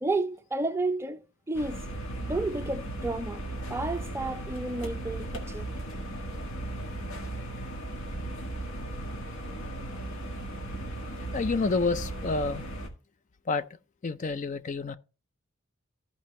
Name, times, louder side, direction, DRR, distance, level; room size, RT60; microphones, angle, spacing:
voice 1, 0.0-1.2 1.5-1.9 2.2-3.4 3.7-5.7, right 2 dB, 15° right, 0.5 m, -31 dB
sound 1, 1.5-12.9, right 1 dB, 85° left, 1.8 m, -36 dB
voice 2, 11.3-12.6 13.5-13.7 14.0-15.0, left 3 dB, 35° left, 0.4 m, -28 dB
14.5 x 5.1 x 3.1 m
head